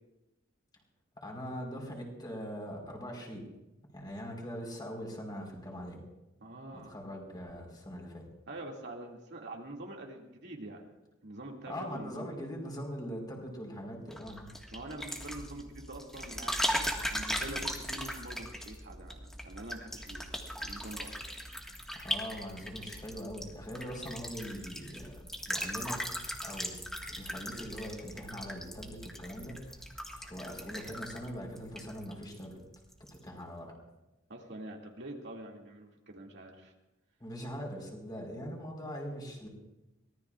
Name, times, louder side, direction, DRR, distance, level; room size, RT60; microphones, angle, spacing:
voice 1, 1.2-3.4 3.9-6.0 6.7-8.3 11.7-14.5 21.9-26.0 26.4-26.8 27.1-29.8 30.1-32.6 33.1-33.7 37.2-39.5, equal, 20° left, -1 dB, 4.3 m, -42 dB
voice 2, 6.4-7.0 8.5-10.9 11.2-12.3 14.7-21.2 34.3-36.7, right 1 dB, 60° right, 0 dB, 2.4 m, -45 dB
sound 1, 14.1-32.4 32.7-33.2, equal, ahead, 1.7 m, -39 dB
24.0 x 18.5 x 2.5 m, 0.98 s
head